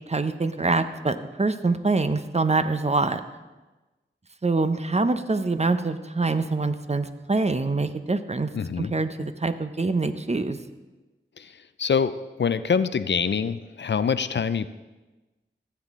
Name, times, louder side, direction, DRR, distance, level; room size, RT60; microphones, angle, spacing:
voice 1, 0.1-3.2 4.4-8.5 8.8-10.6, right 3 dB, 35° right, 10 dB, 0.7 m, -25 dB
voice 2, 8.5-8.9 11.4-14.7, left 6 dB, 65° left, 13 dB, 0.4 m, -25 dB
15.0 x 8.1 x 3.6 m, 1.1 s
wide cardioid pair, 45°, 20 cm